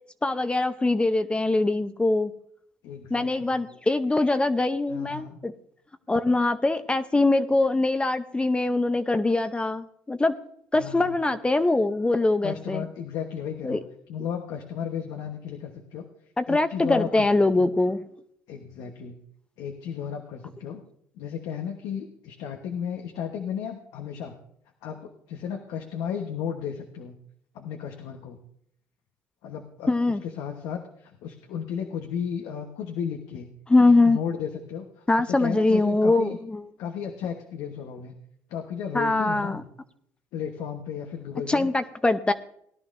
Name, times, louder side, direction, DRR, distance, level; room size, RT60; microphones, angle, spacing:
voice 1, 0.2-2.3 3.1-5.5 6.1-10.3 10.7-12.8 13.6-13.8 16.4-18.0 29.9-30.2 33.7-34.2 35.1-36.6 38.9-39.6 41.5-42.3, left 2 dB, 15° left, 9 dB, 0.7 m, -23 dB
voice 2, 2.8-3.6 4.9-5.4 10.7-11.2 12.4-13.8 14.1-16.0 16.5-17.3 17.6-17.7 18.5-19.2 19.6-20.8 21.2-24.3 24.8-27.2 27.5-28.4 29.4-33.5 34.0-36.4 36.8-38.2 38.5-39.6 40.3-41.7, left 8 dB, 80° left, 4 dB, 1.1 m, -34 dB
18.5 x 11.0 x 2.6 m, 0.69 s
supercardioid pair, 80°, 6 cm